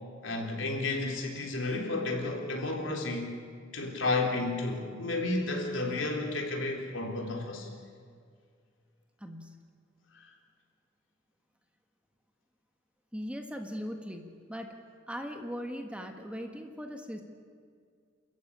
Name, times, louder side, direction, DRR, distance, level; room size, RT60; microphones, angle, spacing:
voice 1, 0.2-3.3 3.7-7.7 10.2-10.3, left 2 dB, 70° left, 2 dB, 3.6 m, -32 dB
voice 2, 9.2-9.6 13.1-14.7 15.1-17.2, equal, 5° right, 4 dB, 1.6 m, -39 dB
29.0 x 14.5 x 8.7 m, 2.2 s
head